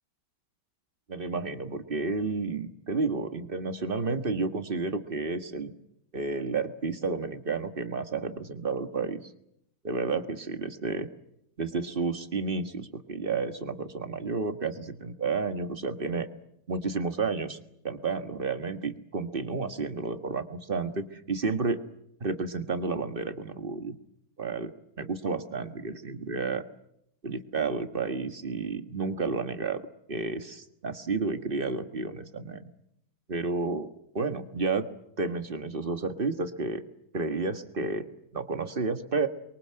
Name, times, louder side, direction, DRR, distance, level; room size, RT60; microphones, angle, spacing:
voice 1, 1.1-5.7 6.1-9.2 9.8-11.1 11.6-16.3 16.7-17.6 17.8-21.8 22.2-23.9 24.4-24.7 25.0-26.6 27.2-29.8 30.1-32.6 33.3-34.9 35.2-36.8 37.1-38.1 38.3-39.3, right 4 dB, 30° right, 9 dB, 1.5 m, -31 dB
29.5 x 23.5 x 7.7 m, 0.77 s
omnidirectional pair, 2.3 m